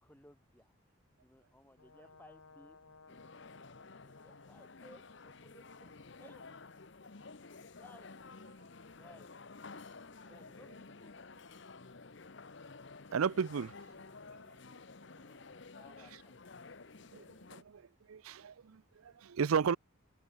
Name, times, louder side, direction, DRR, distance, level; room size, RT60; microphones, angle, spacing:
voice 1, 0.0-0.8 1.2-2.8 4.0-5.9 6.2-6.5 7.8-8.2 8.9-9.4 10.3-11.2 14.4-16.3, left 1 dB, 10° left, 3.7 m, -61 dB
Brass instrument, 1.8-7.0, left 4 dB, 80° left, 2.0 m, -60 dB
sound 1, 3.1-17.6, left 4 dB, 55° left, 0.9 m, -52 dB
voice 2, 13.1-13.7 17.1-17.2 17.5-17.8 18.1-19.8, right 6 dB, 85° right, 0.5 m, -33 dB
head